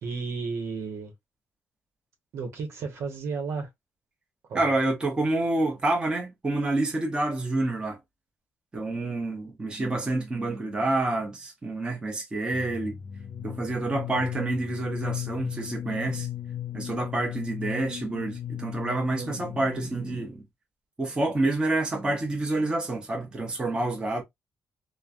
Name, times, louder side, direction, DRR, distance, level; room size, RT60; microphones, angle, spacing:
voice 1, 0.0-1.1 2.3-3.7 4.5-4.7 19.1-19.6, right 4 dB, 70° right, 1.0 m, -33 dB
voice 2, 4.5-8.0 8.7-13.0 13.4-16.3 16.7-20.4 21.0-24.2, right 2 dB, 20° right, 0.9 m, -28 dB
sound 1, 12.5-20.2, left 11 dB, 45° left, 0.4 m, -36 dB
3.1 x 2.2 x 2.5 m
cardioid pair, 140°, 5 cm